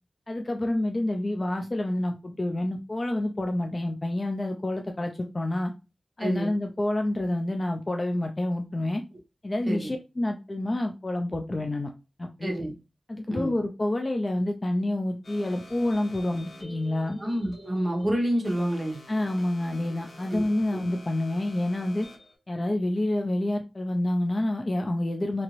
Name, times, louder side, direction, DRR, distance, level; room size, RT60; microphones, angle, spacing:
voice 1, 0.3-5.7 6.2-9.0 9.4-11.9 12.2-12.5 13.1-17.2 19.1-22.1 22.5-25.4, left 1 dB, 30° left, 3 dB, 0.4 m, -28 dB
voice 2, 6.2-6.5 9.7-9.9 12.4-12.7 13.3-13.5 17.2-19.0 20.3-20.4 20.7-20.8, right 1 dB, 35° right, 1 dB, 0.9 m, -28 dB
sound 1, 15.2-22.3, left 1 dB, 65° left, 1.0 m, -49 dB
2.8 x 2.5 x 2.9 m, 0.29 s
wide cardioid pair, 90°, 0 cm